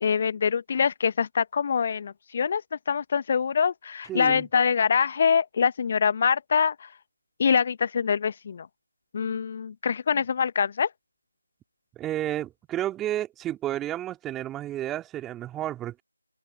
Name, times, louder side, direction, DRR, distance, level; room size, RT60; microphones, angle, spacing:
voice 1, 0.0-6.9 7.4-8.7 9.1-10.9, left 6 dB, 25° left, 1.2 m, -24 dB
voice 2, 4.1-4.5 10.1-10.2 12.0-16.0, right 13 dB, 5° right, 2.6 m, -31 dB
open air
figure-of-eight pair, 165°, 0 cm